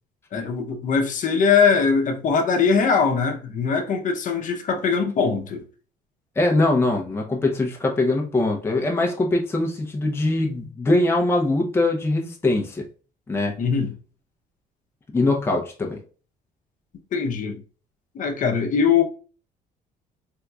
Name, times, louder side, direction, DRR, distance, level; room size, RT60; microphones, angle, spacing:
voice 1, 0.3-5.6 13.6-13.9 17.1-17.6 18.1-19.0, left 5 dB, 50° left, 0.7 m, -21 dB
voice 2, 6.4-12.9 13.3-13.5 15.1-16.0, left 2 dB, 15° left, 0.6 m, -22 dB
3.5 x 2.9 x 2.3 m
cardioid pair, 110°, 17 cm